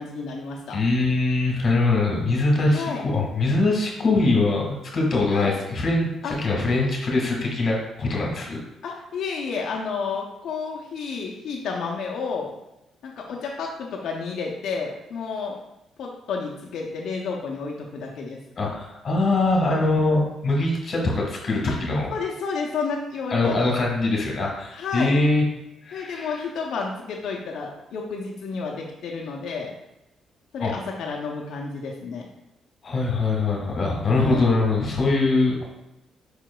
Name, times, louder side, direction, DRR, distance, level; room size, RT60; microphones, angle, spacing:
voice 1, 0.0-0.8 2.7-3.0 5.3-5.6 6.2-6.4 8.8-12.5 13.0-15.6 16.0-18.4 21.7-21.8 22.1-23.7 24.7-25.1 25.9-29.7 30.5-32.3 34.2-34.5, left 5 dB, 70° left, -1 dB, 0.6 m, -31 dB
voice 2, 0.7-8.6 18.6-22.1 23.3-25.4 25.8-26.3 30.6-30.7 32.8-35.6, left 2 dB, 45° left, -1 dB, 1.6 m, -22 dB
4.9 x 4.6 x 2.3 m, 0.89 s
cardioid pair, 90°, 0 cm